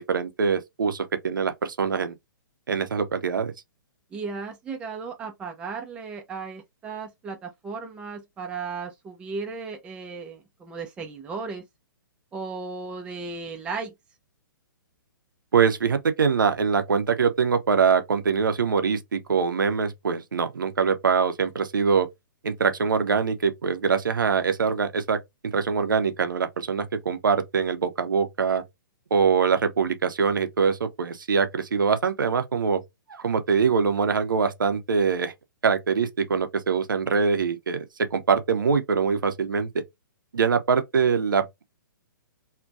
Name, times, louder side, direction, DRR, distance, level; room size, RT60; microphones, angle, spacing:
voice 1, 0.0-2.2 2.7-3.5 15.5-22.1 22.4-25.2 25.4-28.6 29.1-32.8 33.1-35.3 35.6-37.9 38.1-39.7 40.3-41.6, right 5 dB, 65° right, 0.5 m, -23 dB
voice 2, 4.1-11.6 12.3-13.9, right 4 dB, 10° right, 0.3 m, -35 dB
2.3 x 2.1 x 2.4 m
figure-of-eight pair, 120°, 12 cm